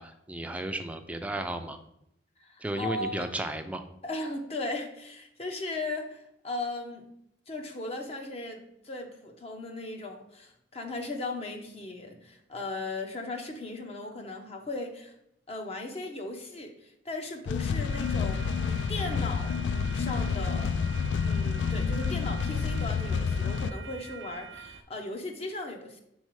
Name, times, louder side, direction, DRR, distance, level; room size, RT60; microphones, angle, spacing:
voice 1, 0.0-1.8 2.6-3.8, right 1 dB, 10° right, 6 dB, 0.4 m, -34 dB
voice 2, 2.4-3.3 4.0-7.0 7.5-15.1 15.5-19.6 19.9-20.8 21.2-26.0, left 2 dB, 35° left, 3 dB, 0.8 m, -37 dB
sound 1, 17.5-23.7, left 6 dB, 75° left, 0.3 m, -29 dB
sound 2, 17.9-24.8, right 5 dB, 85° right, 0.6 m, -46 dB
5.5 x 4.1 x 4.7 m, 0.78 s
head